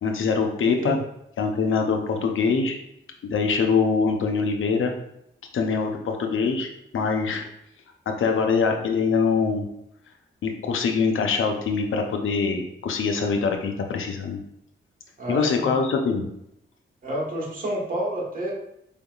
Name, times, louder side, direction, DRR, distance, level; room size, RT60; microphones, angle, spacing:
voice 1, 0.0-1.0 1.4-2.8 3.2-4.9 5.5-7.4 8.1-9.7 10.4-14.4 15.3-16.2, left 5 dB, 80° left, 4 dB, 0.6 m, -23 dB
voice 2, 15.2-15.7 17.0-18.5, right 1 dB, 45° right, -4 dB, 1.4 m, -29 dB
4.5 x 3.5 x 2.4 m, 0.78 s
cardioid pair, 60°, 20 cm